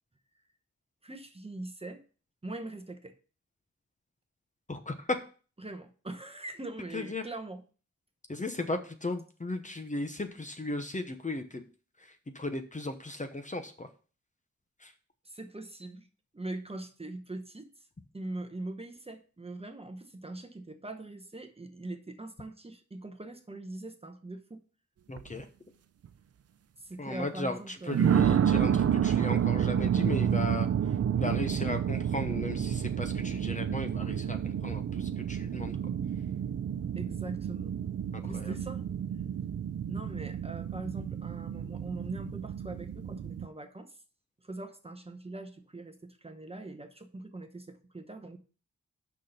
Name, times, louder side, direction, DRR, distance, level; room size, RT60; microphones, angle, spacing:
voice 1, 1.0-2.0 2.4-3.2 5.6-7.6 15.2-16.1 16.3-17.7 18.1-24.6 26.8-28.2 37.0-37.8 38.2-38.8 39.9-44.0 44.4-48.4, right 2 dB, 20° right, 7 dB, 0.9 m, -42 dB
voice 2, 4.7-5.2 6.9-7.2 8.3-11.6 12.0-13.9 14.8-14.9 25.1-25.5 27.0-35.8 38.1-38.5, left 2 dB, 25° left, 7 dB, 0.9 m, -36 dB
sound 1, 25.2-25.4 26.0-26.1 27.9-43.5, right 8 dB, 55° right, 0.5 m, -30 dB
6.5 x 5.8 x 6.5 m, 0.38 s
wide cardioid pair, 130°, 30 cm